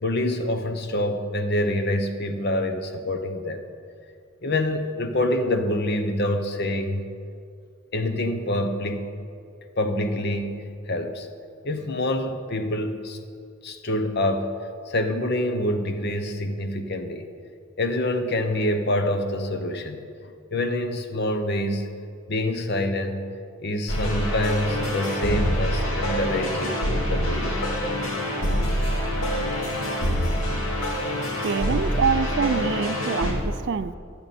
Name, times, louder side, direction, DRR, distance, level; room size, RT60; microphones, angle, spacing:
voice 1, 0.0-3.6 4.4-7.1 7.9-9.1 9.8-11.3 11.6-13.2 13.6-14.5 14.9-17.3 17.8-20.0 20.5-21.9 22.3-23.3 23.6-27.6, left 1 dB, 50° left, 1.0 m, -26 dB
sound 1, 23.9-33.3, equal, 75° left, 2.2 m, -25 dB
voice 2, 31.4-34.0, right 5 dB, 55° right, 0.4 m, -25 dB
15.5 x 12.5 x 4.3 m
head